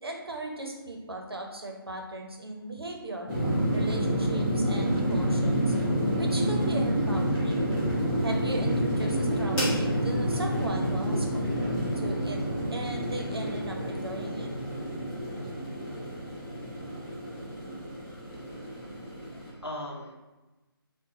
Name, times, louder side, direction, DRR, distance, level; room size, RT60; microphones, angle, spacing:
voice 1, 0.0-3.3 3.7-5.8 6.2-7.8 8.2-12.4 12.7-14.5, right 1 dB, 75° right, 1 dB, 0.8 m, -37 dB
sound 1, 3.3-19.5, equal, 5° left, 0.5 m, -28 dB
voice 2, 18.3-20.1, left 1 dB, 85° left, -1 dB, 0.7 m, -42 dB
4.6 x 2.3 x 2.6 m, 1.1 s
figure-of-eight pair, 150°, 13 cm